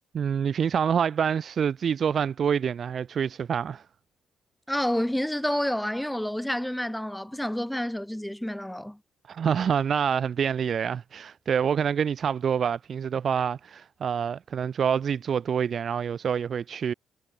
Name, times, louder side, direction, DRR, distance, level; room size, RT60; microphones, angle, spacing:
voice 1, 0.1-3.8 9.3-16.9, right 7 dB, 55° right, 2.7 m, -26 dB
voice 2, 4.7-9.0, equal, 5° left, 4.8 m, -29 dB
cardioid pair, 90°, 0 cm